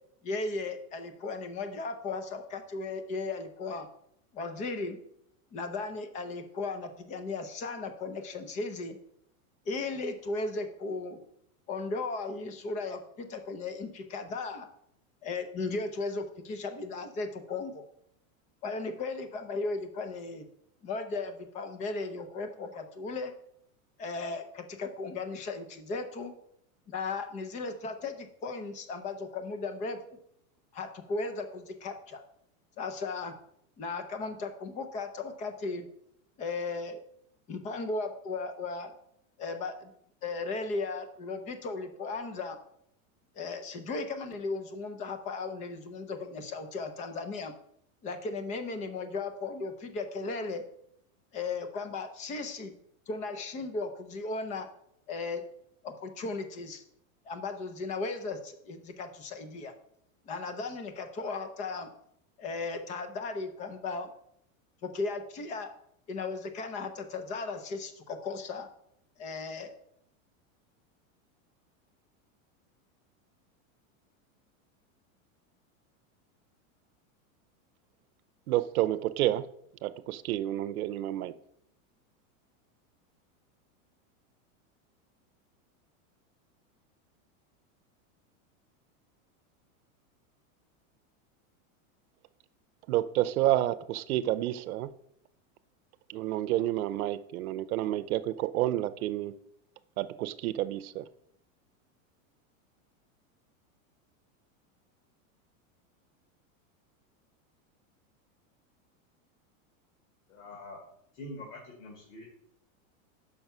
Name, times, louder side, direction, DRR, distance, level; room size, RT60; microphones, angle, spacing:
voice 1, 0.2-3.9 4.3-5.0 5.5-9.0 9.7-11.2 11.7-14.7 15.2-17.9 18.6-20.5 20.8-23.3 24.0-26.3 26.9-30.2 30.7-32.2 32.8-33.3 33.8-35.9 36.4-37.0 37.5-38.9 39.4-39.9 40.2-42.6 43.4-47.5 48.0-50.7 51.3-52.7 53.1-54.7 55.1-55.4 55.8-56.8 57.2-59.7 60.3-61.9 62.4-64.1 64.8-65.7 66.1-68.7 69.2-69.7, left 3 dB, 20° left, 0.5 m, -36 dB
voice 2, 78.5-79.5 79.8-81.3 92.9-94.9 96.1-99.3 100.0-101.1, right 14 dB, 85° right, 0.7 m, -29 dB
voice 3, 110.3-110.8 111.2-112.2, left 1 dB, 60° left, 2.4 m, -44 dB
6.0 x 5.8 x 5.5 m
supercardioid pair, 165°, 42 cm